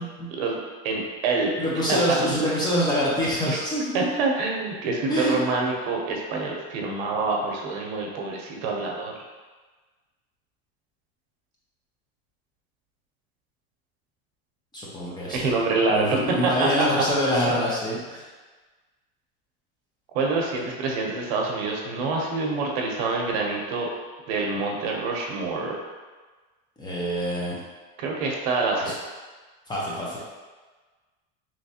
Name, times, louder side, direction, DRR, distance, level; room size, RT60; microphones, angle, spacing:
voice 1, 0.3-1.5 1.9-2.0 3.5-3.6 3.9-9.1 15.3-16.9 17.5-17.6 20.1-23.9 24.3-25.8 28.0-29.0, right 3 dB, 85° right, 0 dB, 0.8 m, -26 dB
voice 2, 1.6-4.1 5.1-5.4 14.7-15.4 15.9-18.2 26.8-27.6 28.8-28.9 29.7-30.2, equal, 15° left, -6 dB, 0.6 m, -25 dB
3.2 x 3.1 x 2.8 m, 1.3 s
cardioid pair, 155°, 30 cm